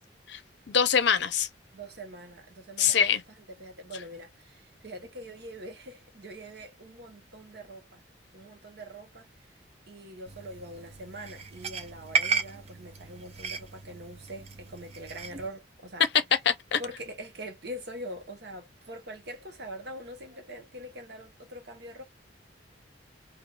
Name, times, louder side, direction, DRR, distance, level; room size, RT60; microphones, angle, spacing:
voice 1, 0.7-1.5 2.8-3.2 16.5-16.8, left 7 dB, 65° left, 0.6 m, -24 dB
voice 2, 1.7-8.0 8.3-9.3 9.9-16.1 16.8-22.0, right 1 dB, 55° right, 0.8 m, -43 dB
sound 1, 10.3-15.5, right 5 dB, 35° right, 0.4 m, -34 dB
2.3 x 2.2 x 3.1 m
head